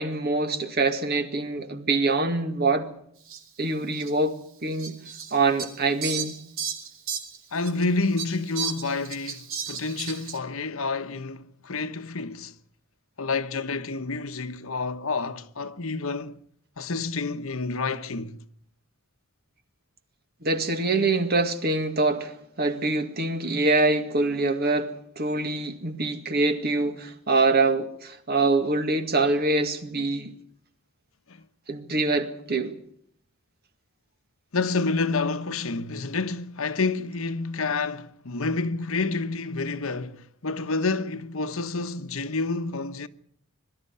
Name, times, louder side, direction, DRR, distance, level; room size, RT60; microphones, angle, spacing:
voice 1, 0.0-2.9 3.6-4.3 4.6-5.0 5.3-6.3 20.4-30.3 31.7-32.7, right 3 dB, 45° right, 2.1 m, -24 dB
Fowl, 3.3-3.4 3.9-4.1 4.8-7.8 8.2-10.4, right 7 dB, 65° right, 2.7 m, -34 dB
voice 2, 7.5-12.6 13.2-16.4 16.8-18.4 31.3-31.4 34.5-43.1, left 3 dB, 70° left, 1.2 m, -29 dB
22.5 x 13.0 x 9.9 m
head